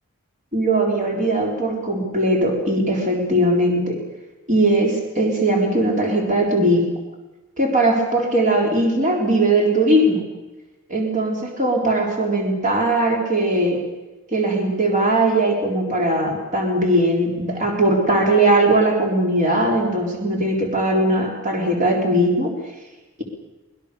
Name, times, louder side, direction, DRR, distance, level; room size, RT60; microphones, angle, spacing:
voice 1, 0.5-4.0 4.5-6.9 7.6-10.2 10.9-13.8 14.3-22.5, right 1 dB, 35° right, 0 dB, 3.8 m, -19 dB
23.0 x 21.0 x 6.8 m, 1.1 s
head